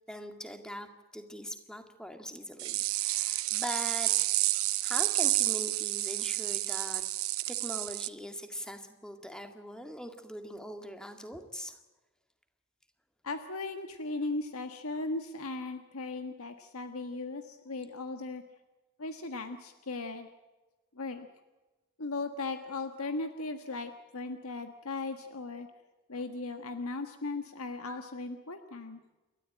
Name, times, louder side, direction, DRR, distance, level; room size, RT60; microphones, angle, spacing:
voice 1, 0.1-0.9 1.1-4.1 4.8-7.0 7.4-11.8, equal, 5° left, 6 dB, 2.0 m, -42 dB
sound 1, 2.6-8.1, right 17 dB, 75° right, 0.8 m, -30 dB
voice 2, 13.2-18.4 19.0-20.3 20.9-21.3 22.0-25.7 26.1-29.0, left 3 dB, 80° left, 7 dB, 1.5 m, -37 dB
29.5 x 13.0 x 8.9 m, 1.1 s
head